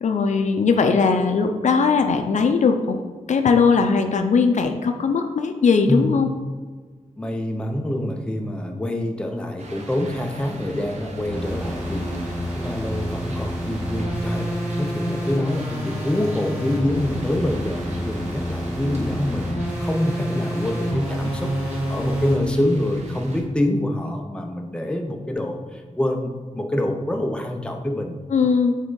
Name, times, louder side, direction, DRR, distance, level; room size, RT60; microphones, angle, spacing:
voice 1, 0.0-3.0 3.3-6.3 28.3-28.8, left 5 dB, 70° left, 6 dB, 0.5 m, -19 dB
voice 2, 7.2-12.2 12.5-28.2, left 1 dB, 10° left, 3 dB, 0.6 m, -26 dB
sound 1, 9.6-23.4, right 2 dB, 60° right, 0.8 m, -38 dB
sound 2, 11.3-22.4, equal, 10° right, 1.7 m, -28 dB
7.4 x 3.5 x 3.9 m, 1.4 s
wide cardioid pair, 130°, 13 cm